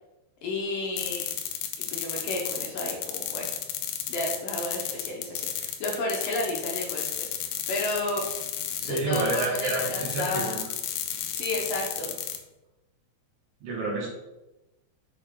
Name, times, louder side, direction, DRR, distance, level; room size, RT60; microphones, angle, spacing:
voice 1, 0.4-1.3 1.9-3.5 4.1-8.3 8.8-10.6 11.3-12.2, left 2 dB, 70° left, -1 dB, 2.1 m, -32 dB
sound 1, 1.0-12.4, left 10 dB, 90° left, 2.2 m, -32 dB
voice 2, 8.8-10.6 13.6-14.1, right 3 dB, 55° right, -4 dB, 3.4 m, -29 dB
6.9 x 6.2 x 3.7 m, 0.98 s
omnidirectional pair, 5.3 m